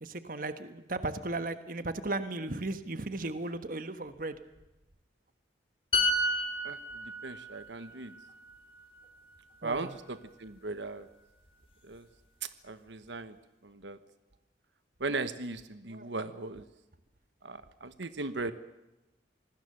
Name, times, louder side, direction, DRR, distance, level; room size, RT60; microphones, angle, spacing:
voice 1, 0.0-4.4 9.6-10.0 15.9-16.1, right 2 dB, 50° right, 10 dB, 1.3 m, -36 dB
sound 1, 5.9-9.5 9.8-10.1, left 1 dB, 30° left, 3.0 m, -32 dB
voice 2, 6.6-8.1 9.6-11.1 11.8-12.1 12.6-13.3 13.6-14.0 15.0-16.7 17.4-18.5, right 3 dB, 80° right, 11 dB, 1.2 m, -38 dB
26.5 x 20.0 x 6.8 m, 1.0 s
head